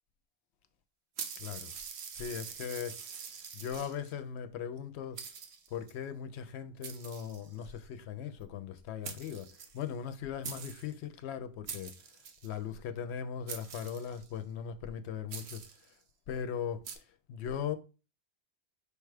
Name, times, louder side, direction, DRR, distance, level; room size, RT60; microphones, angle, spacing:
sound 1, 1.2-4.1 4.8-4.9 5.2-5.9 6.8-7.8 8.8-8.9 9.0-10.1 10.4-10.9 11.7-12.5 13.5-14.4 15.3-15.9 16.8-17.0, right 7 dB, 90° right, 1.0 m, -44 dB
voice 1, 1.4-1.7 2.1-3.0 3.5-5.2 5.7-9.5 9.7-11.9 12.4-15.6 16.3-17.0 17.3-17.8, left 8 dB, 85° left, 0.8 m, -39 dB
4.9 x 2.3 x 4.8 m
omnidirectional pair, 1.1 m